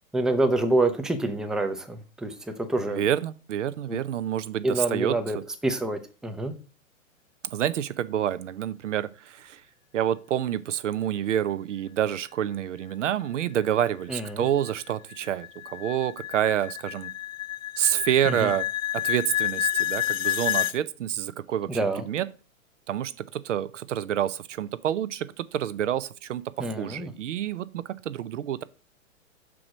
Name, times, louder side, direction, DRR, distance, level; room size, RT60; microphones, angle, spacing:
voice 1, 0.1-3.0 3.9-4.0 4.6-5.4 5.6-6.5 14.1-14.5 18.3-18.5 21.7-22.0 26.6-27.1, right 2 dB, ahead, 0.5 m, -27 dB
voice 2, 2.9-5.4 7.4-9.6 9.9-17.1 17.8-18.7 18.9-21.7 22.1-22.3 22.9-28.6, right 10 dB, 65° right, 0.7 m, -28 dB
sound 1, 13.6-20.8, left 13 dB, 75° left, 0.5 m, -30 dB
6.0 x 4.9 x 6.2 m
figure-of-eight pair, 110°, 40 cm